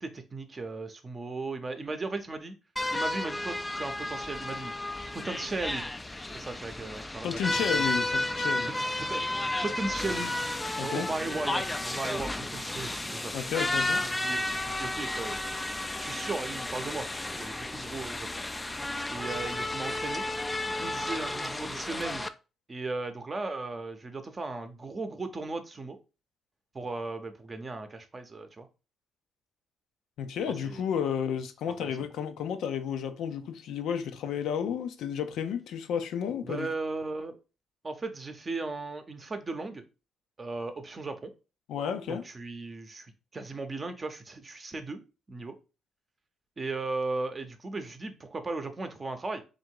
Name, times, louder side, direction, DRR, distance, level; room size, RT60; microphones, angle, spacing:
voice 1, 0.0-2.6 2.9-4.7 5.1-5.9 6.3-7.9 8.8-9.2 9.6-10.4 10.8-13.3 13.8-15.4 15.9-18.3 19.1-20.2 20.8-22.3 22.7-26.0 26.7-28.7 30.6-30.8 31.8-32.0 36.4-37.4 37.8-39.8 40.4-41.3 42.1-45.0 45.3-45.5 46.6-49.4, right 3 dB, 30° right, 0.7 m, -36 dB
sound 1, 2.8-22.3, left 1 dB, 15° left, 0.3 m, -32 dB
voice 2, 7.2-8.7 10.8-11.1 13.3-14.0 30.2-36.7 41.7-42.2, left 8 dB, 80° left, 0.5 m, -32 dB
3.5 x 2.5 x 4.6 m
cardioid pair, 90°, 0 cm